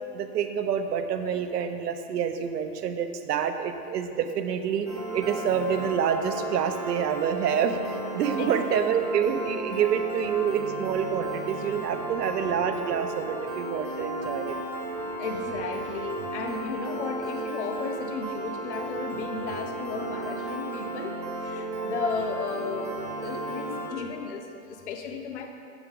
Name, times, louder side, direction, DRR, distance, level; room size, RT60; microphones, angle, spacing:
voice 1, 0.1-4.9 5.1-14.6, right 7 dB, 90° right, 8 dB, 0.7 m, -27 dB
Piano, 4.9-23.9, right 2 dB, 25° right, 0.4 m, -34 dB
voice 2, 8.4-8.8 14.3-25.5, left 4 dB, 50° left, 4 dB, 0.5 m, -35 dB
8.0 x 5.9 x 3.5 m, 2.5 s
hypercardioid pair, 170°, 47 cm